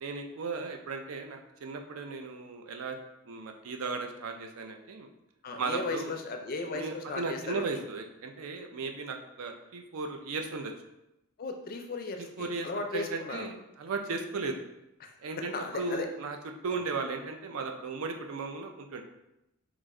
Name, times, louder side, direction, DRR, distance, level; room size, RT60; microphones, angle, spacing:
voice 1, 0.0-3.0 3.2-5.1 5.6-6.2 6.7-10.7 12.2-14.6 15.2-16.4 16.6-19.0, right 4 dB, 70° right, 5 dB, 0.4 m, -36 dB
voice 2, 5.4-7.6 11.4-13.5 15.0-16.1 16.7-16.8, left 3 dB, 40° left, 4 dB, 0.4 m, -36 dB
3.0 x 2.5 x 3.6 m, 0.88 s
head